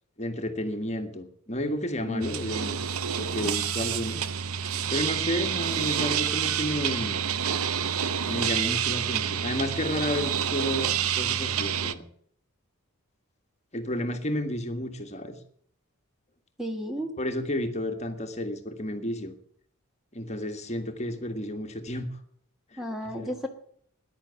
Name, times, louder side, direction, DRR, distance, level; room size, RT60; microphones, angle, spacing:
voice 1, 0.2-2.8 3.2-4.2 4.9-7.2 8.2-12.0 13.7-15.4 17.2-19.3 20.1-22.1 22.7-22.8 23.2-23.3, left 1 dB, 30° left, 5 dB, 1.6 m, -31 dB
voice 2, 2.1-2.4 16.6-17.1 22.8-23.5, equal, ahead, 4 dB, 1.4 m, -32 dB
sound 1, 2.2-11.9, right 8 dB, 75° right, 0.8 m, -28 dB
15.0 x 10.5 x 7.0 m, 0.64 s
head